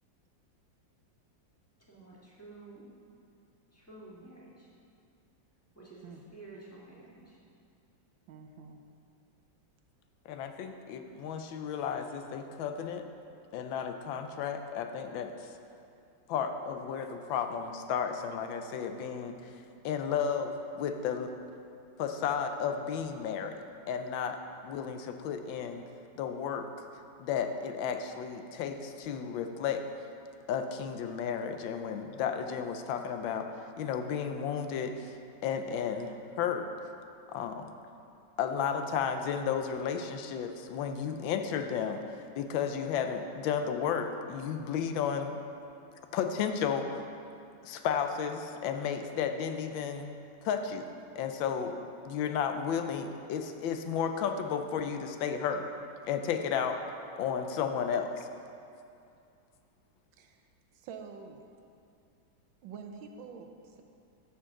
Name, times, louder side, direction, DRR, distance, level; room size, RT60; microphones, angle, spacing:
voice 1, 1.9-2.9 3.7-4.7 5.7-7.4, right 2 dB, 10° left, -7 dB, 1.5 m, -51 dB
voice 2, 8.3-8.8 60.1-60.4 60.7-61.4 62.6-63.8, right 6 dB, 80° right, 4 dB, 1.5 m, -47 dB
voice 3, 10.3-13.0 13.5-15.3 16.3-19.3 19.8-21.3 22.0-23.6 23.9-24.4 24.6-25.8 26.2-26.7 27.2-29.8 30.5-33.5 33.8-35.1 35.4-36.7 37.3-37.7 38.4-42.0 42.4-45.4 46.1-47.0 47.6-50.1 50.4-50.9 51.1-55.7 56.1-56.8 57.2-58.3, left 7 dB, 85° left, 6 dB, 1.4 m, -33 dB
12.0 x 7.0 x 3.7 m, 2.5 s
omnidirectional pair, 2.1 m